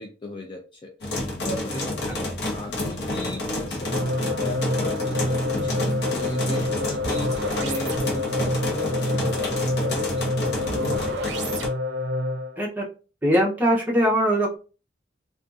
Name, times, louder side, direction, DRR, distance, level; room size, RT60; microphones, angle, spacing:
voice 1, 0.0-11.1, left 1 dB, 25° left, 2 dB, 0.3 m, -36 dB
sound 1, 1.0-11.7, left 2 dB, 65° left, 0.7 m, -30 dB
sound 2, 3.8-12.6, left 1 dB, 80° right, 0.4 m, -27 dB
voice 2, 13.2-14.6, equal, 10° right, -3 dB, 0.7 m, -21 dB
2.6 x 2.3 x 2.4 m, 0.35 s
head